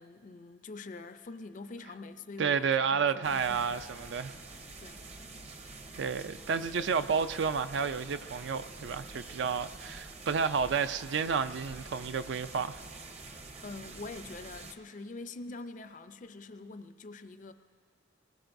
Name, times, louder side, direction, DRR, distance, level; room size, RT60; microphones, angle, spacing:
voice 1, 0.0-3.9 4.8-5.0 13.6-17.5, left 3 dB, 40° left, 0.4 m, -45 dB
voice 2, 2.4-4.4 6.0-12.8, right 6 dB, 65° right, 0.4 m, -31 dB
sound 1, 3.2-14.7, right 3 dB, 30° right, 0.7 m, -47 dB
25.0 x 20.0 x 2.6 m
head